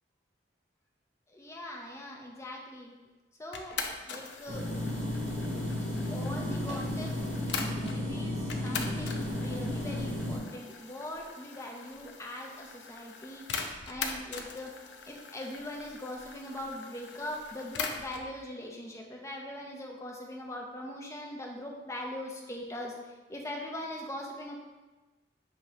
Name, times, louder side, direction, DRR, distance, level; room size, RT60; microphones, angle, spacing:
voice 1, 1.3-2.9 3.4-3.8 4.0-4.7 5.8-7.1 7.9-13.4 13.9-14.8 15.1-24.6, left 1 dB, 15° left, 0 dB, 0.5 m, -41 dB
sound 1, 3.5-8.0 8.5-18.3, left 5 dB, 75° left, 0.5 m, -41 dB
sound 2, 4.5-10.4, left 1 dB, 35° right, 0.8 m, -33 dB
6.4 x 2.8 x 2.8 m, 1.2 s
head